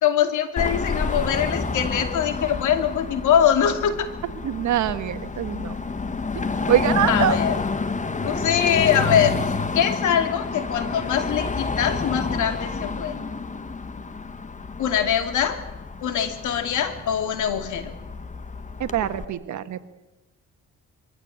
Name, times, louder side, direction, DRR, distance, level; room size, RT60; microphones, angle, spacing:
voice 1, 0.0-4.1 7.1-7.5 8.2-13.2 14.8-15.6 16.0-17.9, left 9 dB, 80° left, 8 dB, 2.6 m, -23 dB
Car passing by / Traffic noise roadway noise / Engine, 0.6-19.3, left 4 dB, 25° left, 1.4 m, -29 dB
voice 2, 4.4-5.8 6.3-7.4 18.8-19.8, right 11 dB, 75° right, 11 dB, 1.5 m, -24 dB
23.0 x 16.0 x 8.7 m, 1.1 s
cardioid pair, 90°, 30 cm